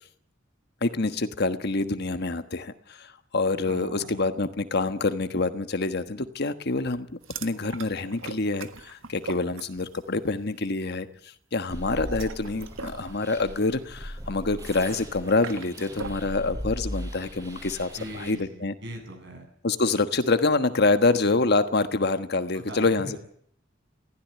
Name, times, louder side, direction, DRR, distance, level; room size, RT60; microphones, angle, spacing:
voice 1, 0.8-7.1 7.4-11.1 11.5-18.7 19.6-23.2, left 3 dB, 55° left, 10 dB, 1.3 m, -26 dB
voice 2, 3.6-4.3 18.0-19.5 22.5-23.2, right 1 dB, 60° right, 5 dB, 7.9 m, -40 dB
sound 1, 7.2-10.1 10.4-10.7 11.9-16.3, right 5 dB, 80° right, 1.6 m, -42 dB
sound 2, 11.7-18.3, equal, 20° right, 5.1 m, -38 dB
21.0 x 16.0 x 9.4 m, 0.64 s
head